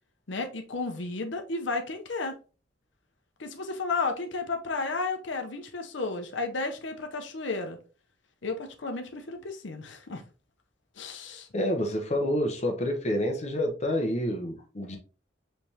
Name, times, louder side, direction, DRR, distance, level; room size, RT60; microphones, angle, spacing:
voice 1, 0.3-2.4 3.4-7.8 8.4-10.2 11.0-11.5, left 3 dB, 70° left, 5 dB, 0.8 m, -33 dB
voice 2, 11.5-15.0, left 1 dB, 35° left, 4 dB, 0.9 m, -28 dB
5.0 x 3.4 x 2.8 m, 0.36 s
head